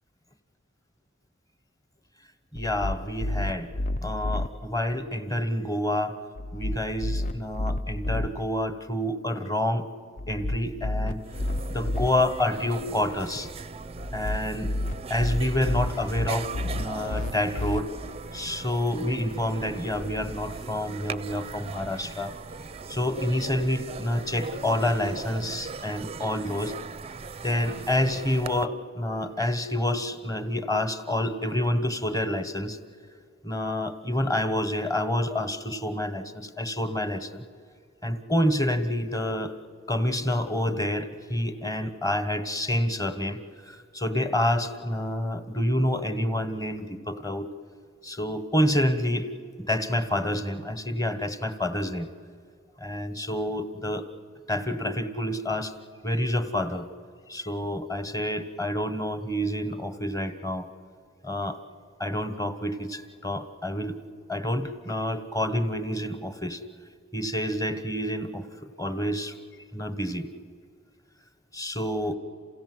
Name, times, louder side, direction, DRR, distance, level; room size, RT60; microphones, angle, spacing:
voice 1, 2.5-3.7 4.0-6.1 6.5-9.9 10.3-11.2 11.7-13.5 14.1-14.7 15.1-17.9 18.3-22.3 22.9-26.7 27.4-32.8 33.4-37.4 38.0-39.5 39.9-43.4 43.7-47.5 48.0-49.3 49.6-52.1 52.8-54.0 54.5-55.7 56.0-56.9 57.3-60.7 61.2-61.6 62.0-64.0 64.3-66.6 67.1-68.5 68.8-69.3 69.7-70.3 71.5-72.1, left 1 dB, 20° left, 10 dB, 1.3 m, -28 dB
sound 1, 2.6-4.5 6.4-8.3 10.2-12.1 14.0-17.8, left 1 dB, 40° left, 0.5 m, -31 dB
sound 2, 10.9-11.0 11.2-28.6, right 4 dB, 30° right, 0.5 m, -39 dB
28.5 x 16.5 x 7.9 m, 2.3 s
head